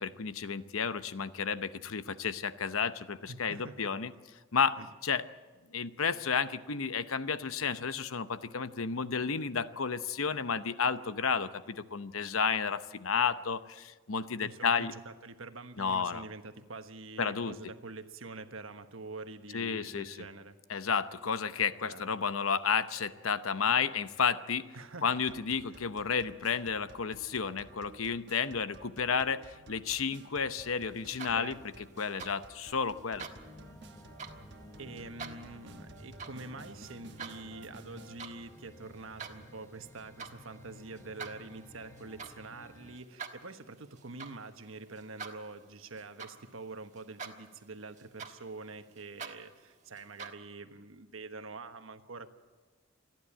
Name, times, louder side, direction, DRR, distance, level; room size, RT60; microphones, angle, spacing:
voice 1, 0.0-4.1 4.5-4.8 5.0-5.2 5.7-14.9 15.8-16.2 17.2-17.5 19.5-20.2 20.7-24.7 25.0-31.5 32.0-33.3, left 6 dB, 90° left, 12 dB, 0.8 m, -32 dB
voice 2, 3.3-4.0 4.8-4.9 14.4-20.6 21.8-22.0 24.7-25.1 31.3-31.8 34.8-52.3, right 3 dB, 80° right, 8 dB, 1.3 m, -46 dB
sound 1, 25.3-38.2, right 2 dB, 55° right, 1.2 m, -55 dB
sound 2, 31.0-31.6 32.0-32.3 33.0-33.4 34.0-34.4 35.0-35.4 36.0-36.4 36.7-37.4 37.9-38.4 38.7-39.4 40.0-40.4 40.9-46.7 47.0-47.6 48.0-50.3, right 5 dB, 35° right, 1.4 m, -46 dB
sound 3, 33.2-43.0, left 1 dB, 15° left, 0.8 m, -53 dB
27.5 x 11.0 x 8.6 m, 1.3 s
head